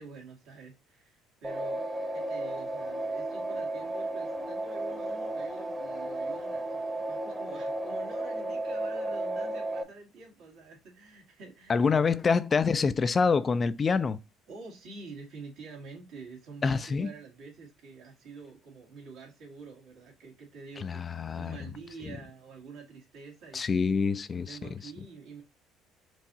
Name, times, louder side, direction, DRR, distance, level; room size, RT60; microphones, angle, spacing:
voice 1, 0.0-12.2 14.5-21.0 21.3-23.8 24.4-25.4, right 4 dB, 75° right, 1.9 m, -47 dB
sound 1, 1.4-9.8, right 1 dB, 20° right, 1.0 m, -34 dB
voice 2, 11.7-14.2 16.6-17.1 20.8-21.6 23.5-24.8, left 5 dB, 35° left, 0.4 m, -26 dB
4.6 x 2.6 x 4.0 m
supercardioid pair, 70°, 0 cm